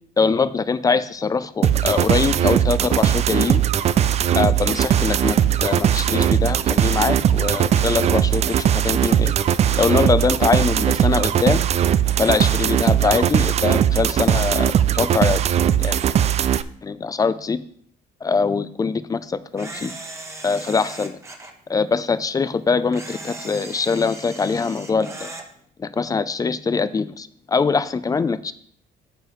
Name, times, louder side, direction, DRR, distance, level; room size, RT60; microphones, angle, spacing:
voice 1, 0.2-3.6 4.3-9.3 9.8-11.6 12.2-15.4 15.8-16.0 16.8-17.6 18.2-19.9 20.4-21.2 21.7-25.3 25.8-28.5, left 4 dB, 20° left, 14 dB, 0.5 m, -22 dB
sound 1, 1.6-16.6, right 10 dB, 40° right, 0.4 m, -19 dB
Camera, 19.6-21.5 22.9-25.5, right 2 dB, 15° right, 1.1 m, -37 dB
9.3 x 7.7 x 3.2 m, 0.63 s
cardioid pair, 110°, 17 cm